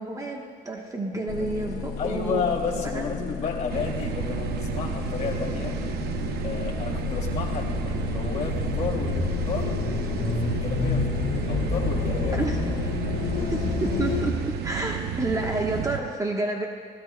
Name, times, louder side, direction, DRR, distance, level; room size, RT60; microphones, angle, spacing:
voice 1, 0.0-2.4 2.9-3.0 12.3-12.6 13.5-16.7, right 2 dB, 20° right, 1 dB, 1.1 m, -29 dB
sound 1, 1.3-14.3, left 5 dB, 65° left, 1.6 m, -30 dB
voice 2, 2.0-5.8 6.4-9.8 10.4-12.4, left 4 dB, 45° left, 0 dB, 2.6 m, -32 dB
sound 2, 3.7-16.0, right 8 dB, 70° right, 0.8 m, -32 dB
29.5 x 16.0 x 2.2 m, 2.3 s
cardioid pair, 110°, 17 cm